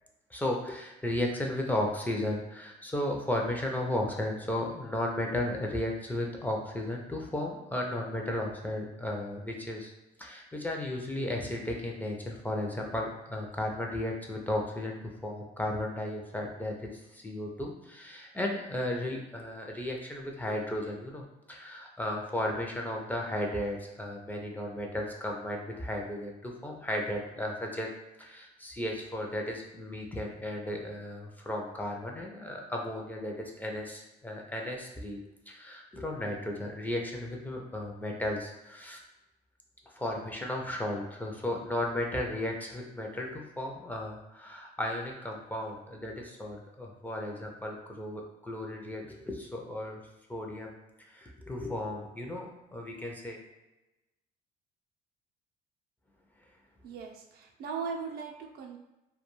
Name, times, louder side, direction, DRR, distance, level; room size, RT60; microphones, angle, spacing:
voice 1, 0.3-9.9 10.2-15.0 15.2-16.8 17.2-21.2 21.5-27.9 28.2-35.2 35.5-39.0 40.0-50.0 50.3-50.7 51.2-53.4, left 1 dB, 10° left, 0 dB, 0.4 m, -34 dB
voice 2, 56.8-58.8, right 5 dB, 65° right, 2 dB, 0.5 m, -38 dB
2.3 x 2.2 x 3.0 m, 0.98 s
cardioid pair, 110°, 17 cm